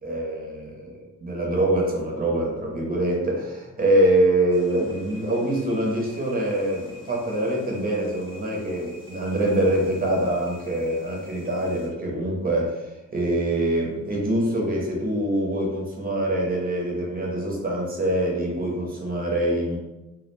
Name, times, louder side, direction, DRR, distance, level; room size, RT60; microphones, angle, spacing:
voice 1, 0.0-12.9 13.1-19.8, right 1 dB, 30° right, -2 dB, 0.6 m, -24 dB
sound 1, 4.5-11.9, left 1 dB, 15° left, 0.6 m, -48 dB
2.2 x 2.1 x 3.0 m, 1.0 s
wide cardioid pair, 165°, 32 cm